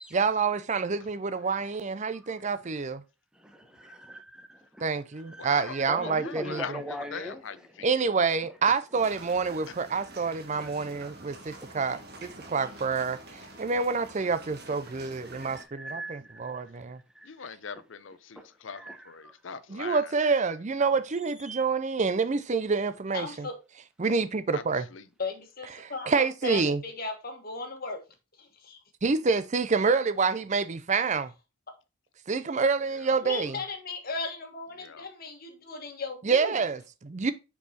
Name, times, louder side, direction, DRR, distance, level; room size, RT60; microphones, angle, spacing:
voice 1, 0.1-3.0 4.8-6.8 7.8-17.0 19.7-23.5 24.0-24.9 25.8-26.8 29.0-31.3 32.3-33.6 36.2-37.3, right 4 dB, 35° right, 0.5 m, -27 dB
voice 2, 3.3-4.9 5.3-7.9 10.6-10.7 11.6-11.7 15.3-16.6 17.2-17.3 18.4-19.3 21.4-21.6, right 1 dB, 5° right, 1.0 m, -41 dB
voice 3, 5.4-5.7 6.0-7.9 17.2-20.0 24.5-24.6 24.9-25.0 34.8-35.1, left 6 dB, 65° left, 0.6 m, -41 dB
sound 1, 8.9-15.6, right 2 dB, 50° right, 1.4 m, -47 dB
voice 4, 23.1-23.6 25.2-28.0 28.4-28.8 33.2-36.6, left 3 dB, 45° left, 1.5 m, -36 dB
5.4 x 4.7 x 4.2 m
head